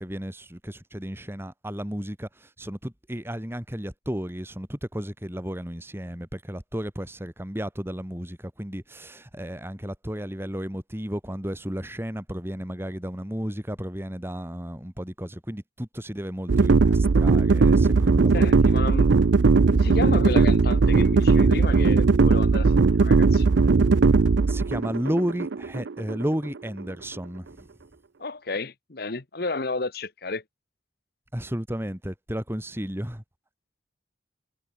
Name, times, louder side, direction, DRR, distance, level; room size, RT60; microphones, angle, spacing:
voice 1, 0.0-18.8 24.5-27.7 31.3-33.2, equal, 15° right, 2.4 m, -33 dB
sound 1, 16.5-26.6, right 4 dB, 75° right, 0.5 m, -19 dB
voice 2, 18.3-19.1 19.7-23.7 28.2-30.4, left 3 dB, 55° left, 1.2 m, -32 dB
head